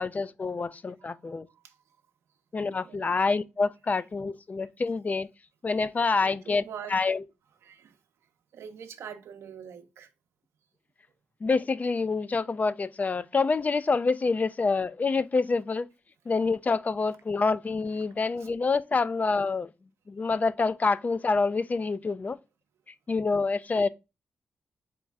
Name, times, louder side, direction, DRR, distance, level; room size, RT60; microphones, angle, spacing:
voice 1, 0.0-1.5 2.5-5.3 5.6-6.6 6.9-7.2 11.4-15.9 16.3-19.7 20.1-22.4 23.1-23.9, left 4 dB, 35° left, 0.3 m, -27 dB
voice 2, 1.0-1.8 2.6-3.1 4.6-4.7 6.2-7.0 7.6-8.0 8.5-10.1 18.3-18.5 23.4-23.9, right 8 dB, 85° right, 0.6 m, -45 dB
4.6 x 3.1 x 3.5 m
cardioid pair, 60°, 4 cm